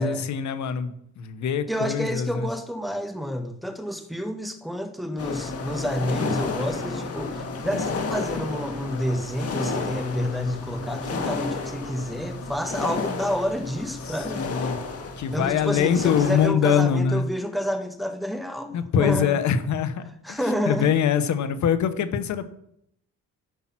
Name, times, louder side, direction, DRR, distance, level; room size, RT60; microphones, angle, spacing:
voice 1, 0.0-2.4 14.1-14.8 15.2-17.3 18.7-20.0 20.3-20.4 20.7-22.4, left 8 dB, 70° left, 12 dB, 1.2 m, -23 dB
voice 2, 1.7-14.5 15.3-19.4 20.2-20.9, equal, ahead, 6 dB, 1.4 m, -29 dB
sound 1, 5.2-16.5, left 3 dB, 50° left, 1.9 m, -31 dB
14.0 x 5.6 x 6.0 m, 0.75 s
cardioid pair, 90°, 30 cm